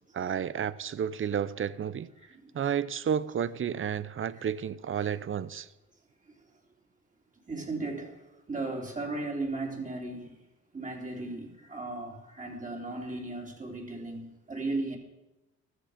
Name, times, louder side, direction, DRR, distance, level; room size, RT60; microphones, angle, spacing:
voice 1, 0.1-2.1 2.5-5.7, right 8 dB, 45° right, 0.7 m, -31 dB
voice 2, 2.3-2.6 4.3-4.5 5.0-5.2 7.5-10.4 10.7-15.0, right 2 dB, 25° right, 3.5 m, -36 dB
14.5 x 13.5 x 5.1 m
cardioid pair, 90°, 30 cm